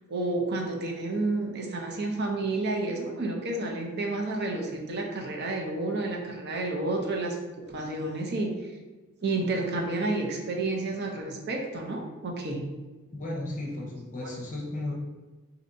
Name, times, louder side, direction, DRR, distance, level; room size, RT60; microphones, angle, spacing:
voice 1, 0.1-7.4 7.7-8.5 9.2-12.6 14.2-14.3, right 2 dB, 50° right, 1 dB, 0.6 m, -30 dB
voice 2, 13.1-14.9, left 2 dB, 35° left, -2 dB, 0.8 m, -34 dB
4.2 x 2.7 x 2.6 m, 1.2 s
head